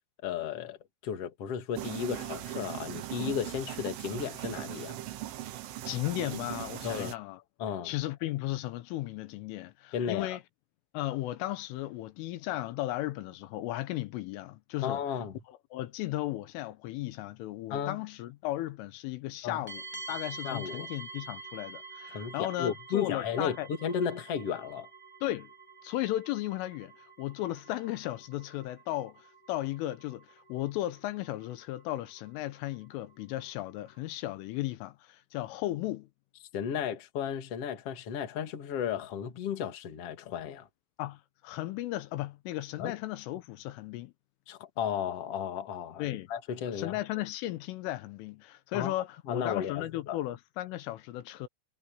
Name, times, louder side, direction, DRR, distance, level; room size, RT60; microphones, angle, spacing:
voice 1, 0.2-0.8 1.0-5.0 6.8-7.1 7.6-7.9 9.9-10.4 14.8-15.4 17.7-18.0 19.4-19.6 20.4-20.9 22.1-24.9 36.5-40.7 42.8-43.0 44.5-47.0 48.7-49.0 49.3-50.2, left 8 dB, 45° left, 2.3 m, -34 dB
sound 1, 1.8-7.1, right 14 dB, 85° right, 4.1 m, -39 dB
voice 2, 5.9-7.4 7.8-10.4 10.9-15.0 15.7-23.7 25.2-25.5 25.8-36.1 41.0-44.1 46.0-46.3 46.8-51.5, left 15 dB, 85° left, 3.6 m, -35 dB
sound 2, 19.7-34.0, right 3 dB, 10° left, 0.6 m, -48 dB
omnidirectional pair, 5.6 m